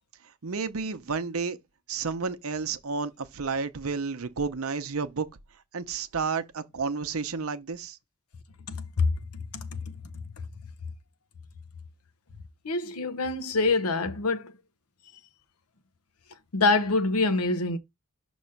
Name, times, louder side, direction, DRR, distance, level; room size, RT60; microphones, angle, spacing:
voice 1, 0.4-1.6 1.9-5.3 5.7-8.0, right 5 dB, 75° right, 0.7 m, -31 dB
voice 2, 8.7-9.1 9.5-9.8 12.6-14.5 16.5-17.8, left 3 dB, 90° left, 0.8 m, -25 dB
6.3 x 3.0 x 5.7 m
head